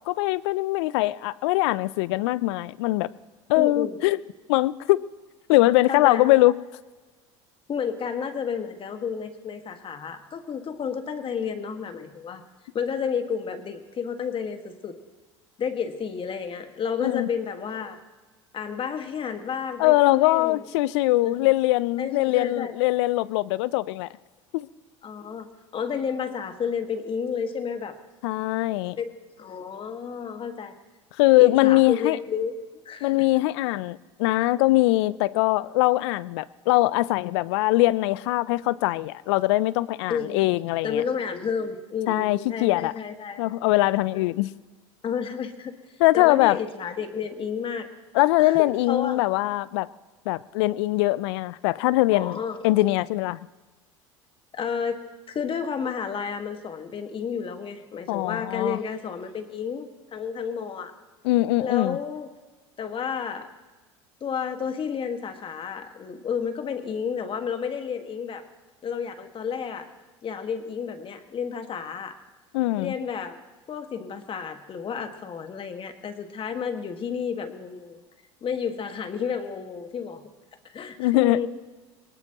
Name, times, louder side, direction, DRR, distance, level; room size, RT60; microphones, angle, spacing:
voice 1, 0.1-3.1 3.5-4.2 4.5-5.1 5.5-6.6 17.0-17.3 19.8-24.1 24.5-24.7 28.2-29.0 31.2-32.2 33.0-41.0 42.1-42.9 43.4-44.5 46.0-46.6 48.1-49.9 50.3-53.4 58.1-58.8 61.2-62.0 72.5-72.9 81.0-81.4, left 19 dB, 70° left, 20 dB, 0.5 m, -22 dB
voice 2, 3.6-4.0 5.9-6.4 7.7-12.4 12.7-15.0 15.6-18.0 18.5-20.7 21.2-21.5 22.0-22.7 25.0-28.0 29.0-30.8 31.4-33.2 40.1-40.5 40.8-43.6 44.1-44.2 45.0-45.8 46.1-47.9 48.4-49.2 52.1-52.6 54.5-60.9 61.6-62.3 62.8-63.5 64.2-68.4 68.8-69.9 70.2-72.2 72.8-73.4 73.7-78.0 78.4-80.3 80.6-81.5, left 6 dB, 35° left, 7 dB, 1.8 m, -31 dB
22.0 x 19.5 x 3.0 m, 1.3 s
hypercardioid pair, 75°, 15 cm